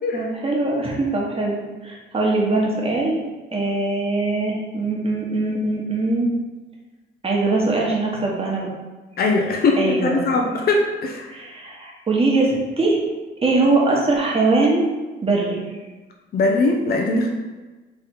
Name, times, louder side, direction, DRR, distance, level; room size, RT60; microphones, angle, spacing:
voice 1, 0.1-1.6 1.8-3.2 3.5-6.3 7.2-8.7 9.8-10.2 11.3-13.0 13.4-14.8 15.2-15.6, right 3 dB, 30° right, -2 dB, 1.3 m, -21 dB
voice 2, 9.2-11.3 16.3-17.3, left 3 dB, 50° left, 1 dB, 0.7 m, -20 dB
3.5 x 3.3 x 4.5 m, 1.2 s
cardioid pair, 90°, 20 cm